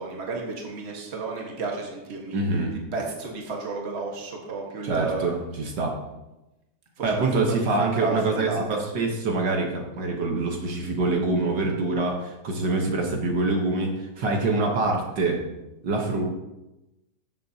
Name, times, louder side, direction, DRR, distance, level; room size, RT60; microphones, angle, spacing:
voice 1, 0.0-2.4 2.7-5.3 7.0-7.3 7.6-9.0, right 3 dB, 35° right, 0 dB, 1.7 m, -32 dB
voice 2, 2.3-2.7 4.8-6.0 7.0-15.4 15.8-16.2, right 3 dB, 70° right, 1 dB, 1.8 m, -25 dB
13.0 x 7.4 x 2.8 m, 0.97 s
omnidirectional pair, 2.0 m